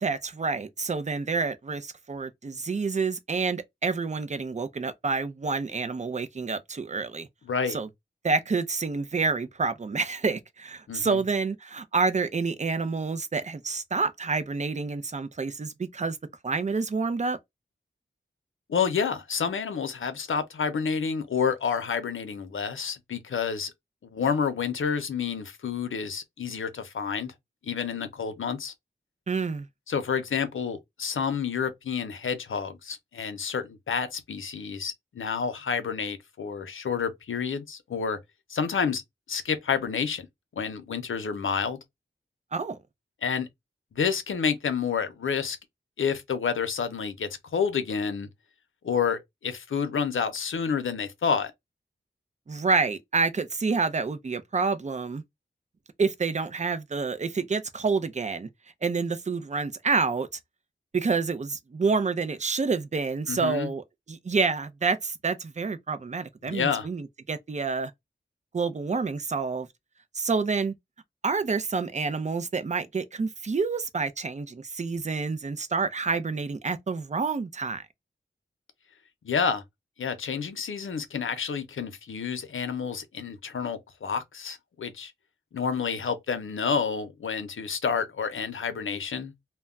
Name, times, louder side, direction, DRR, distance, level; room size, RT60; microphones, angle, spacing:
voice 1, 0.0-7.3 7.7-7.9 8.2-16.2 16.4-17.4 29.3-29.7 42.5-42.8 52.5-55.2 56.0-58.5 58.8-60.4 60.9-67.9 68.5-69.7 70.1-70.8 71.2-77.9, right 4 dB, 35° right, 0.5 m, -28 dB
voice 2, 7.5-7.8 10.9-11.2 18.7-23.7 24.0-27.3 27.6-28.7 29.9-38.2 38.5-39.0 39.3-40.3 40.6-41.8 43.2-43.5 43.9-45.6 46.0-48.3 48.8-51.5 63.3-63.7 66.4-66.9 79.2-79.6 80.0-85.1 85.5-89.3, left 6 dB, 85° left, 0.6 m, -29 dB
2.2 x 2.1 x 3.5 m
wide cardioid pair, 65°, 20 cm